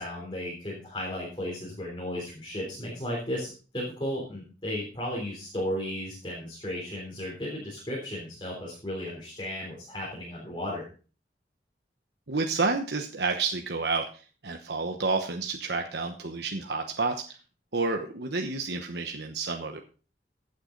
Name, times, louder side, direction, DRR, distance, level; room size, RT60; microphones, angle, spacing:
voice 1, 0.0-10.8, left 1 dB, 25° left, -4 dB, 3.6 m, -34 dB
voice 2, 12.3-17.4 17.7-19.8, right 3 dB, 70° right, 4 dB, 1.0 m, -30 dB
15.0 x 8.2 x 3.9 m, 0.37 s
head